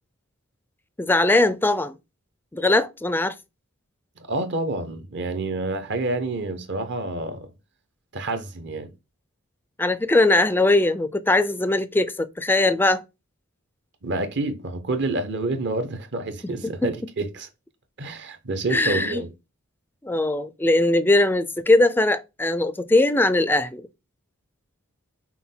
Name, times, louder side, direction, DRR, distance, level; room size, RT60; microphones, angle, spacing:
voice 1, 1.0-2.0 2.5-3.4 9.8-13.0 16.6-16.9 18.7-19.2 20.0-23.9, left 2 dB, 10° left, 0.3 m, -20 dB
voice 2, 4.3-7.5 8.1-8.9 14.0-17.5 18.0-19.3, right 2 dB, 55° right, 0.8 m, -28 dB
5.8 x 2.2 x 3.7 m
head